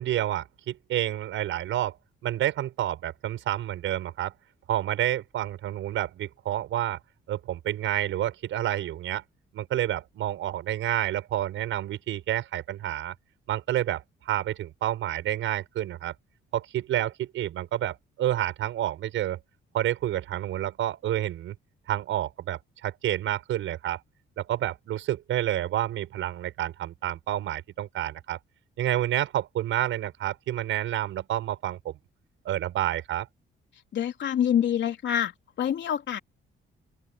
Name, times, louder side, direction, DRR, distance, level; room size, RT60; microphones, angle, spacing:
voice 1, 0.0-2.0 2.2-4.3 4.7-7.0 7.3-9.2 9.5-13.1 13.5-16.2 16.5-19.4 19.7-21.5 21.9-24.0 24.4-28.4 28.8-31.9 32.4-33.3, right 12 dB, 80° right, 5.9 m, -29 dB
voice 2, 33.9-35.3 35.6-36.2, left 9 dB, 65° left, 3.3 m, -26 dB
open air
cardioid pair, 90°, 20 cm